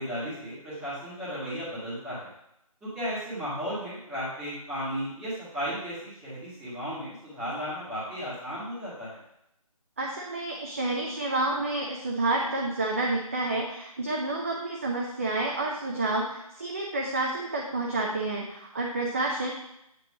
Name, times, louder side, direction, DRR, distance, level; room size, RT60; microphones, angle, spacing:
voice 1, 0.0-2.3 2.8-9.2, equal, 5° right, -11 dB, 1.4 m, -35 dB
voice 2, 10.0-19.5, right 2 dB, 25° right, -1 dB, 0.4 m, -29 dB
8.1 x 2.9 x 4.9 m, 0.81 s
figure-of-eight pair, 160°, 19 cm